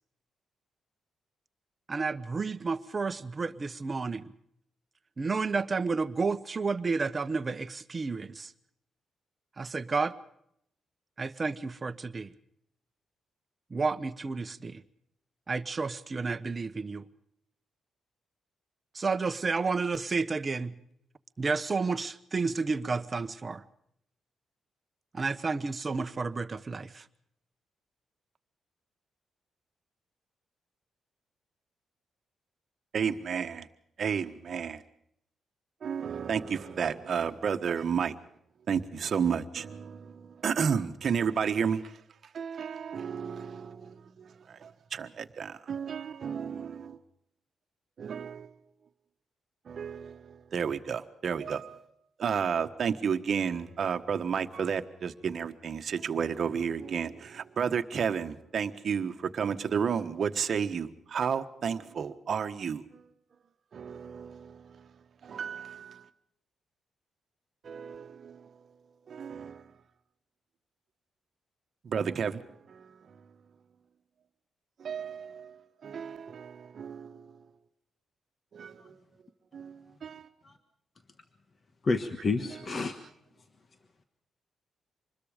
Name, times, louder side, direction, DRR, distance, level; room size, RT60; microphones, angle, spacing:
voice 1, 1.9-4.3 5.2-8.5 9.6-10.1 11.2-12.3 13.7-14.8 15.5-17.0 18.9-20.7 21.4-23.6 25.1-27.0, right 4 dB, 30° right, 1.0 m, -31 dB
voice 2, 32.9-33.7 34.0-34.8 35.8-38.2 38.7-42.0 42.3-47.0 48.0-48.5 49.6-51.8 52.2-63.0 63.7-64.9 65.2-66.1 67.6-68.5 69.1-69.7 71.8-73.2 74.8-77.4 78.5-79.0 79.5-80.3, right 7 dB, 50° right, 1.3 m, -32 dB
voice 3, 81.8-82.9, left 3 dB, 35° left, 1.4 m, -30 dB
26.0 x 21.0 x 5.1 m
cardioid pair, 125°, 0 cm